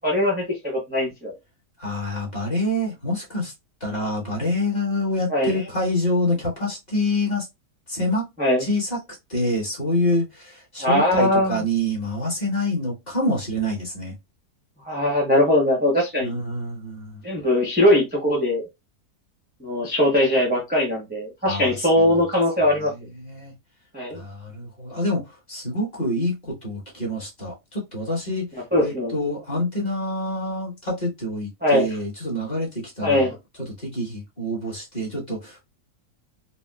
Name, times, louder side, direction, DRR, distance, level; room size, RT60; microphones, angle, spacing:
voice 1, 0.0-1.3 5.3-5.5 8.4-8.6 10.8-11.6 14.9-16.3 17.2-18.7 19.6-22.9 23.9-24.2 28.7-29.1 31.6-31.9 33.0-33.3, left 1 dB, 10° right, 0.5 m, -20 dB
voice 2, 1.8-3.5 3.8-7.5 7.9-8.3 8.6-9.0 9.3-14.1 16.2-17.2 21.4-22.1 22.9-23.5 24.1-35.6, left 1 dB, 30° left, 1.3 m, -27 dB
4.1 x 2.1 x 2.3 m
omnidirectional pair, 1.7 m